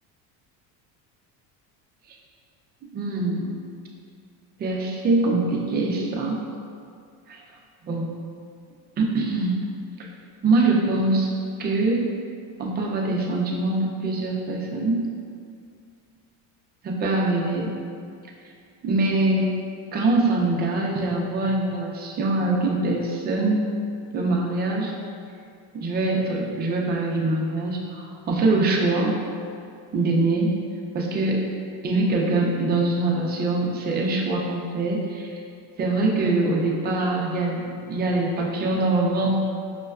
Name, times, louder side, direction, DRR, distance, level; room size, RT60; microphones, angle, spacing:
voice 1, 2.9-3.5 4.6-6.4 7.3-7.4 7.9-8.1 9.0-9.6 10.4-11.3 11.6-12.1 12.6-15.1 16.8-17.7 18.8-19.5 19.9-23.6 24.1-24.9 25.7-29.2 29.9-30.5 30.9-31.4 31.8-35.3 35.8-39.4, right 2 dB, 25° right, -1 dB, 0.3 m, -23 dB
5.2 x 2.2 x 2.3 m, 2.3 s
cardioid pair, 135°, 41 cm